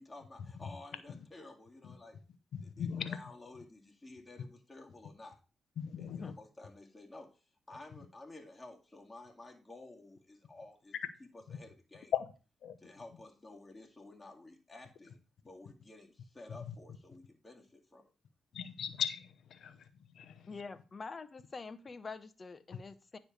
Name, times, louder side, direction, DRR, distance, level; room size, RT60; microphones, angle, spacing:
voice 1, 0.0-2.2 2.6-5.4 6.0-10.9 11.3-12.1 12.8-18.1, left 2 dB, 20° left, 2.0 m, -53 dB
voice 2, 2.5-3.2 5.8-6.3 11.5-11.6 12.1-12.3 12.6-12.8 16.6-16.7 18.5-19.8, left 8 dB, 70° left, 0.7 m, -37 dB
voice 3, 20.5-23.2, left 4 dB, 40° left, 0.9 m, -46 dB
9.6 x 3.3 x 6.4 m
supercardioid pair, 60°, 0 cm